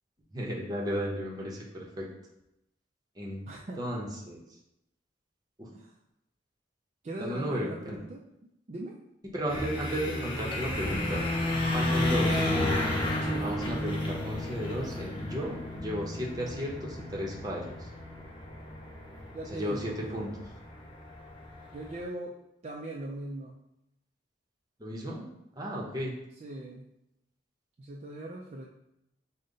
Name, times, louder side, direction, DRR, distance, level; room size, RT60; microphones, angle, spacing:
voice 1, 0.3-2.1 3.2-3.4 3.8-4.4 5.6-5.7 7.2-8.0 9.3-11.2 11.7-12.5 13.4-17.9 19.5-20.3 24.8-25.3 25.6-26.1, equal, 20° right, -2 dB, 0.8 m, -34 dB
voice 2, 3.5-3.8 5.7-5.9 7.0-8.2 8.7-9.0 13.2-13.6 19.3-20.3 21.7-22.3 22.6-23.6 26.4-26.8 27.8-28.7, right 1 dB, 35° right, -2 dB, 0.4 m, -40 dB
sound 1, 9.5-22.0, left 1 dB, 25° left, 0.7 m, -32 dB
5.3 x 2.1 x 3.8 m, 0.86 s
head